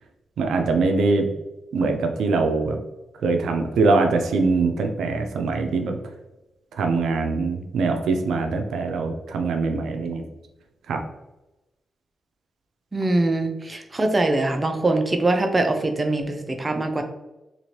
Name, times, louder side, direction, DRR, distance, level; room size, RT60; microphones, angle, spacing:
voice 1, 0.4-1.3 1.7-2.8 3.2-6.0 6.7-10.2 10.9-11.0, right 3 dB, 90° right, 4 dB, 0.3 m, -23 dB
voice 2, 12.9-17.0, right 2 dB, 25° right, 5 dB, 0.4 m, -23 dB
2.8 x 2.5 x 3.0 m, 0.99 s
cardioid pair, 80°, 0 cm